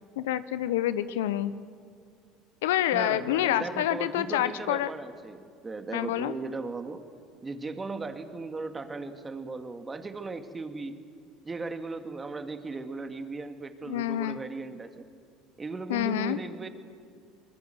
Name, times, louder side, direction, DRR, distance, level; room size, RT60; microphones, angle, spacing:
voice 1, 0.2-1.5 2.6-4.9 5.9-6.3 13.9-14.4 15.9-16.4, left 12 dB, 80° left, 14 dB, 0.9 m, -27 dB
voice 2, 2.9-7.1 7.4-11.0 11.4-15.1 15.6-16.7, right 3 dB, 25° right, 8 dB, 2.2 m, -37 dB
25.5 x 21.0 x 7.9 m, 2.2 s
hypercardioid pair, 75°, 0 cm